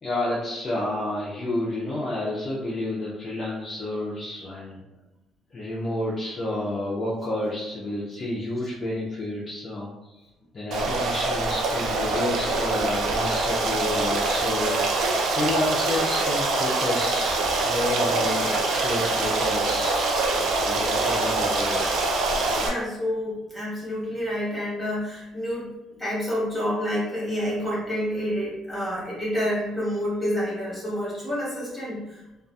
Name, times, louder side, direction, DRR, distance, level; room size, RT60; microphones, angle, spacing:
voice 1, 0.0-4.8 5.5-9.9 10.5-14.7 15.3-20.1 20.6-21.8, left 1 dB, 25° left, -5 dB, 0.4 m, -30 dB
Stream, 10.7-22.7, right 2 dB, 55° right, 0.4 m, -24 dB
voice 2, 22.6-25.7 26.0-32.2, equal, 5° right, -9 dB, 1.1 m, -28 dB
2.6 x 2.3 x 2.2 m, 0.99 s
cardioid pair, 170°, 0 cm